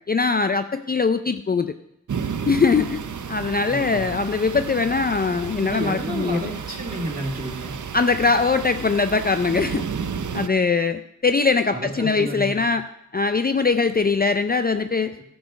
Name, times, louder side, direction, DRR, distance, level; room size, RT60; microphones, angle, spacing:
voice 1, 0.1-1.7 2.5-3.0 3.3-6.4 7.9-9.8 10.3-12.8 13.1-15.2, left 4 dB, 30° left, 9 dB, 0.4 m, -21 dB
sound 1, 2.1-10.5, right 6 dB, 75° right, 0.6 m, -32 dB
voice 2, 3.6-4.1 5.6-7.8 11.7-12.6, right 2 dB, 30° right, -1 dB, 2.5 m, -31 dB
12.0 x 7.1 x 5.2 m, 0.83 s
wide cardioid pair, 55°, 30 cm